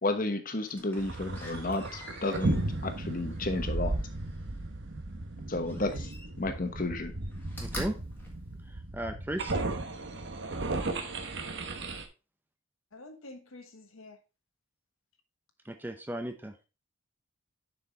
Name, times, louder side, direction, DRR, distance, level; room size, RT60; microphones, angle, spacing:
voice 1, 0.0-4.0 5.5-6.1 6.4-7.1, left 2 dB, 40° left, 1.0 m, -32 dB
Slam, 0.7-4.5 5.6-6.6 6.9-9.2 9.7-9.8, left 1 dB, 10° left, 1.7 m, -46 dB
sound 1, 0.9-12.0, right 2 dB, 55° right, 1.1 m, -35 dB
voice 2, 7.6-8.0 8.7-9.5 15.6-16.7, right 1 dB, 10° right, 0.6 m, -36 dB
voice 3, 12.9-14.2, left 2 dB, 70° left, 1.3 m, -48 dB
7.0 x 5.8 x 3.9 m
head